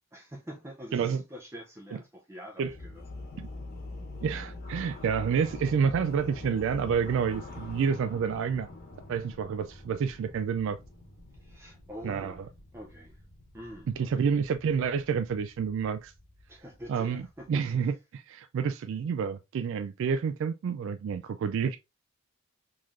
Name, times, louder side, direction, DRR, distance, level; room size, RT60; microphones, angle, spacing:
voice 1, 0.1-3.0 11.4-13.2 13.5-14.2 16.5-17.6, equal, 15° right, 0.5 m, -46 dB
sound 1, 2.6-17.5, left 2 dB, 45° left, 1.3 m, -45 dB
voice 2, 4.2-8.7 9.1-10.8 12.0-12.3 14.0-16.1 16.9-17.2 17.5-21.8, right 6 dB, 65° right, 0.3 m, -29 dB
3.8 x 3.1 x 2.5 m
head